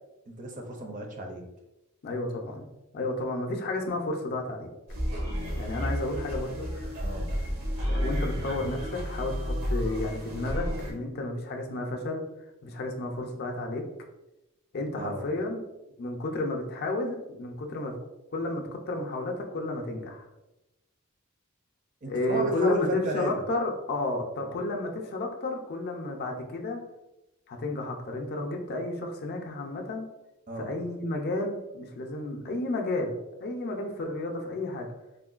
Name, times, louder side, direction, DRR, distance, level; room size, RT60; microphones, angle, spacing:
voice 1, 0.3-1.4 7.0-7.3 15.0-15.3 22.0-23.4 30.5-30.7, right 1 dB, 35° right, 2 dB, 0.5 m, -33 dB
voice 2, 2.0-4.7 5.6-6.9 7.9-12.2 12.6-13.8 14.7-15.6 16.0-18.0 18.3-20.3 22.1-26.8 27.5-30.1 30.6-34.9, left 2 dB, 50° left, 2 dB, 0.4 m, -32 dB
sound 1, 4.9-10.9, equal, 85° right, 1.0 m, -31 dB
3.6 x 2.2 x 2.4 m, 0.93 s
head